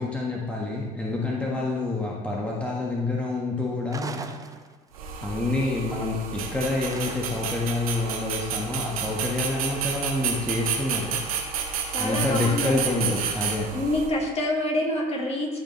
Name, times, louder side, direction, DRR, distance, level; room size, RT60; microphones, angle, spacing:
voice 1, 0.0-4.3 5.2-11.1 12.0-13.7, left 2 dB, 5° left, -3 dB, 1.6 m, -27 dB
voice 2, 1.4-1.7 11.9-13.1 13.7-15.6, left 1 dB, 35° left, -1 dB, 2.4 m, -27 dB
sound 1, 3.9-5.1 6.8-7.6, right 4 dB, 20° right, 0.8 m, -39 dB
sound 2, 4.9-14.1, right 7 dB, 80° right, 1.2 m, -31 dB
13.5 x 5.3 x 3.3 m, 1.5 s
hypercardioid pair, 65°, 18 cm